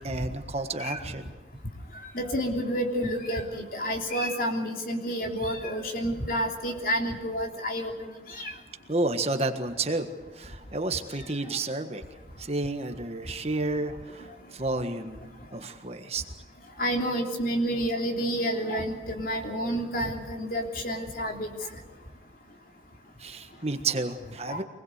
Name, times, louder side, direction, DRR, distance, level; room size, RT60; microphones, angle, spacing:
voice 1, 0.0-1.3 8.9-10.1 10.3-12.0 12.4-15.2 15.5-16.2 23.2-24.6, right 2 dB, 35° right, 7 dB, 1.5 m, -31 dB
voice 2, 2.1-7.9 8.3-8.5 16.8-21.5 24.5-24.6, equal, 50° left, 2 dB, 3.3 m, -29 dB
25.0 x 20.0 x 8.2 m, 1.2 s
head